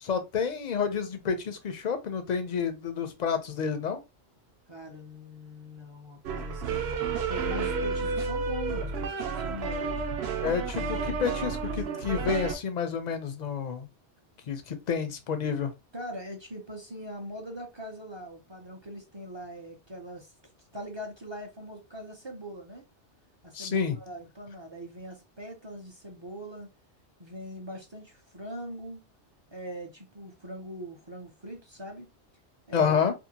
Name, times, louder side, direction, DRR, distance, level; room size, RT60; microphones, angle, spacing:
voice 1, 0.0-4.0 10.4-13.9 14.5-15.7 23.5-23.9 32.7-33.1, left 6 dB, 55° left, 0.5 m, -29 dB
voice 2, 4.7-9.9 15.9-20.3 20.7-22.8 23.4-26.7 27.2-29.0 29.5-32.1 32.7-33.0, equal, 35° right, 0.4 m, -41 dB
sound 1, 6.2-12.5, right 4 dB, 70° right, 0.8 m, -31 dB
2.7 x 2.5 x 2.7 m
omnidirectional pair, 1.2 m